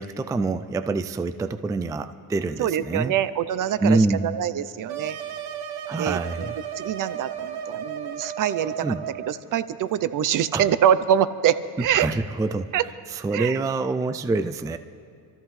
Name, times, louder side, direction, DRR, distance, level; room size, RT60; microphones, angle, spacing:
voice 1, 0.0-3.1 3.8-4.4 5.9-6.5 8.8-9.0 10.5-10.6 11.8-12.7 13.1-14.8, right 3 dB, 10° right, 10 dB, 0.3 m, -26 dB
voice 2, 2.6-5.2 6.0-8.9 9.3-12.1 12.7-12.8 13.3-13.6, right 10 dB, 55° right, 15 dB, 0.6 m, -24 dB
sound 1, 4.9-9.4, right 9 dB, 85° right, 1.1 m, -34 dB
26.5 x 14.0 x 3.2 m, 2.5 s
cardioid pair, 115°, 38 cm